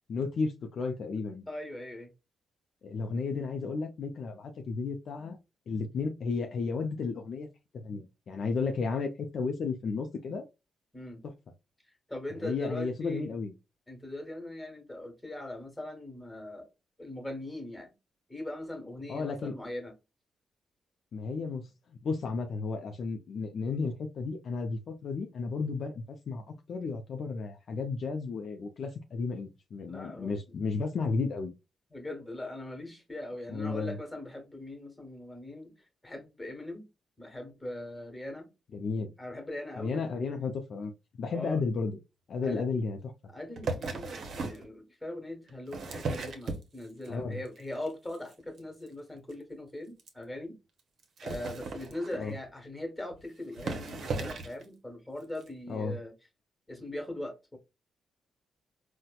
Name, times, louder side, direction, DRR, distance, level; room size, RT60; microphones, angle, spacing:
voice 1, 0.1-1.4 2.8-5.4 5.7-7.5 7.8-10.5 12.4-13.5 19.1-19.5 21.1-21.7 22.0-31.5 33.5-34.0 38.7-39.1 39.8-40.9 41.2-42.0 42.3-43.0 47.1-47.4 52.2-52.3 55.7-56.0, left 4 dB, 65° left, 0.4 m, -33 dB
voice 2, 1.5-2.1 10.9-11.2 12.1-13.3 13.9-16.7 17.0-17.9 18.3-19.9 29.9-30.6 31.9-35.7 36.0-36.8 37.2-38.5 39.2-40.0 41.3-41.6 42.4-42.6 43.3-50.5 51.2-56.1 56.7-57.6, left 1 dB, 15° left, 1.3 m, -40 dB
sound 1, 43.6-44.7 45.5-47.1 47.5-47.9 48.1-48.3 48.6-48.7 48.9-49.0 49.3-49.4 50.0-50.1 51.0-52.4 53.1-53.2 53.5-54.6 55.4-55.5, right 3 dB, 65° right, 0.7 m, -36 dB
4.1 x 2.1 x 2.3 m
cardioid pair, 65°, 0 cm